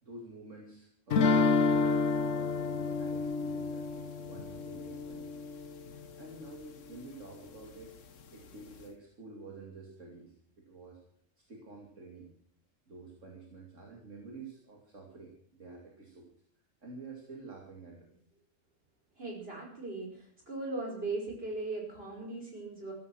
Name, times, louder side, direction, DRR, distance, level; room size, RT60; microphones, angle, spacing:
voice 1, 0.0-5.5 5.9-7.9 8.3-11.0 11.4-12.3 12.9-16.3 16.8-18.2, right 3 dB, 70° right, 0 dB, 3.0 m, -49 dB
sound 1, 1.1-6.0, left 4 dB, 70° left, 1.4 m, -29 dB
voice 2, 19.2-22.9, right 3 dB, 45° right, 0 dB, 5.4 m, -38 dB
15.0 x 14.5 x 6.3 m, 0.63 s
omnidirectional pair, 1.4 m